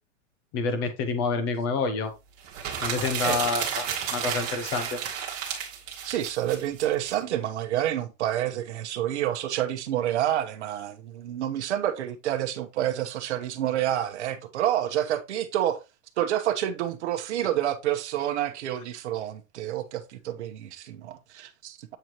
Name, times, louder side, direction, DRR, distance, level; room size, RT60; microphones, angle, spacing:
voice 1, 0.5-2.1 2.8-3.9 4.1-5.0, left 4 dB, 20° left, 0.6 m, -28 dB
sound 1, 2.4-7.1, right 8 dB, 25° right, 1.4 m, -32 dB
voice 2, 6.0-15.8 16.2-22.0, right 12 dB, 60° right, 1.0 m, -28 dB
7.9 x 4.5 x 2.9 m
supercardioid pair, 180°, 39 cm